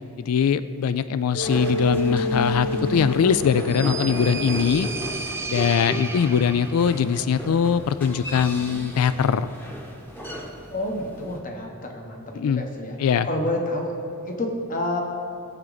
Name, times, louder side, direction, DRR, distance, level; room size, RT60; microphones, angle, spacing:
voice 1, 0.2-4.9 5.5-9.5 12.4-12.6 13.0-13.3, left 7 dB, 90° left, 14 dB, 0.3 m, -22 dB
Mallet percussion, 1.3-5.5, left 1 dB, 75° left, 1.7 m, -31 dB
sound 1, 1.4-11.4, equal, 10° left, 1.0 m, -34 dB
sound 2, 3.3-7.1, right 4 dB, 10° right, 0.4 m, -34 dB
voice 2, 10.7-13.0 13.2-13.9 14.3-15.0, left 1 dB, 40° left, 1 dB, 1.2 m, -29 dB
17.0 x 7.3 x 4.0 m, 2.6 s
head